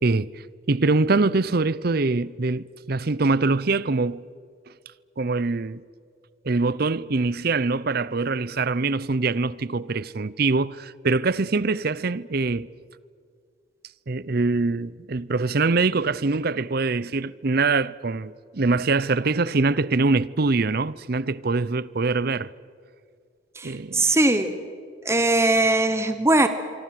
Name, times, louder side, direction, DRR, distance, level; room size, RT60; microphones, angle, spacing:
voice 1, 0.0-4.2 5.2-5.8 6.4-12.7 14.1-22.5 23.6-24.1, right 3 dB, 50° right, 0.7 m, -24 dB
voice 2, 23.6-24.6 25.0-26.5, right 2 dB, 15° right, 1.2 m, -20 dB
25.5 x 24.5 x 7.7 m
head